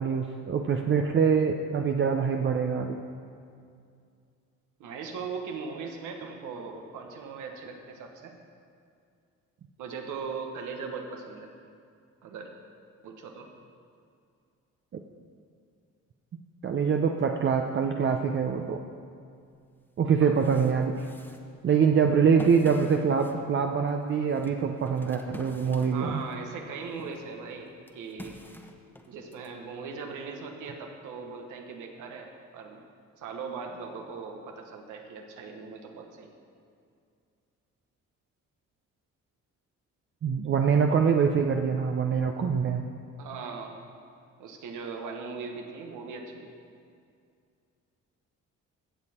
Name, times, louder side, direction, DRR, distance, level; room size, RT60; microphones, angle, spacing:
voice 1, 0.0-3.0 14.9-15.0 16.6-18.8 20.0-21.1 21.6-26.2 40.2-42.9, right 6 dB, 40° right, 4 dB, 0.6 m, -24 dB
voice 2, 4.8-8.4 9.8-11.5 12.2-12.5 13.0-13.5 20.2-20.5 25.9-28.4 29.1-32.8 33.2-36.3 43.2-43.7 44.4-46.5, right 5 dB, 85° right, 3 dB, 1.3 m, -39 dB
sound 1, 19.5-19.6 20.1-26.5 26.9-29.5, left 1 dB, 5° left, 1.0 m, -47 dB
16.0 x 6.5 x 4.3 m, 2.3 s
cardioid pair, 90°, 30 cm